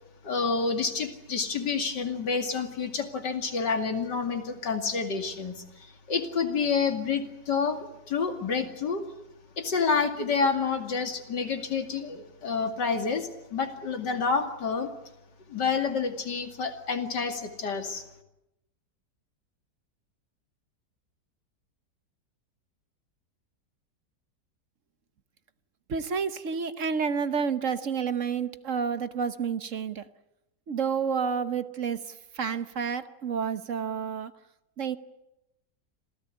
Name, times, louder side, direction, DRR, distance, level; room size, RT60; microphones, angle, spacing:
voice 1, 0.2-9.0 9.6-14.9 15.5-18.0, left 5 dB, 85° left, 3.0 m, -29 dB
voice 2, 25.9-30.1 30.7-34.3 34.8-35.0, right 6 dB, 50° right, 1.3 m, -30 dB
26.5 x 17.0 x 9.7 m
omnidirectional pair, 1.8 m